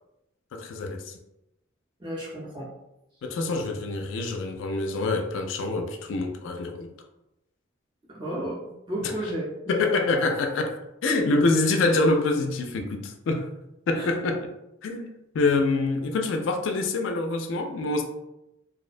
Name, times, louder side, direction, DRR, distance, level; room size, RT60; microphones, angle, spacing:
voice 1, 0.5-1.1 3.2-6.9 9.0-9.1 9.7-10.7 11.0-13.5 13.9-14.5 14.8-18.0, left 3 dB, 65° left, 0.3 m, -26 dB
voice 2, 2.0-2.7 8.1-8.6 8.9-9.7 13.9-14.1, right 1 dB, 25° right, 0.6 m, -33 dB
2.5 x 2.1 x 2.4 m
head